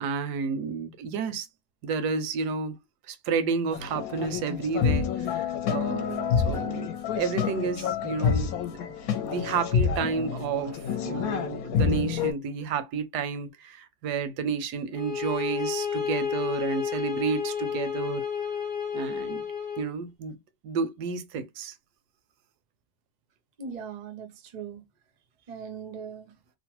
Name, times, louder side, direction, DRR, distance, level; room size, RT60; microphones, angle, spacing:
voice 1, 0.0-1.5 1.8-2.7 3.0-18.2 18.9-19.5 19.8-20.4 20.6-21.8, right 5 dB, 85° right, 1.2 m, -31 dB
sound 1, 3.7-12.3, left 7 dB, 70° left, 1.0 m, -28 dB
voice 2, 5.9-6.3 23.6-24.8 25.5-26.3, right 6 dB, 60° right, 0.4 m, -39 dB
sound 2, 14.9-19.9, left 7 dB, 35° left, 1.0 m, -31 dB
2.9 x 2.1 x 2.9 m
omnidirectional pair, 1.7 m